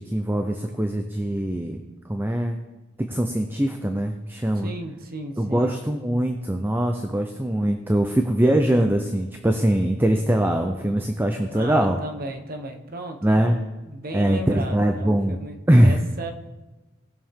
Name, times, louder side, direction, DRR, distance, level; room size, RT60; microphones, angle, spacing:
voice 1, 0.0-1.8 2.1-2.6 3.0-4.7 5.4-12.0 13.2-13.6 14.1-15.4 15.7-16.0, right 1 dB, 10° right, 5 dB, 0.6 m, -22 dB
voice 2, 4.5-5.8 11.5-13.3 13.9-16.3, right 1 dB, 50° right, 5 dB, 1.2 m, -35 dB
18.5 x 6.9 x 3.7 m, 1.1 s
head